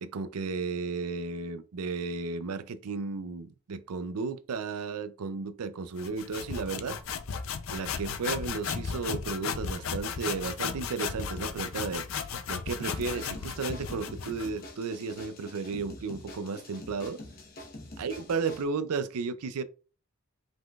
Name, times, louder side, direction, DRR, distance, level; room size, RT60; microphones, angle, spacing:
voice 1, 0.0-7.0 7.7-12.1 12.5-17.2 18.0-19.6, right 4 dB, 80° right, 0.5 m, -34 dB
sound 1, 6.0-14.6, left 6 dB, 65° left, 0.5 m, -35 dB
sound 2, 12.8-18.6, left 1 dB, 40° left, 1.0 m, -46 dB
5.3 x 3.8 x 2.3 m
head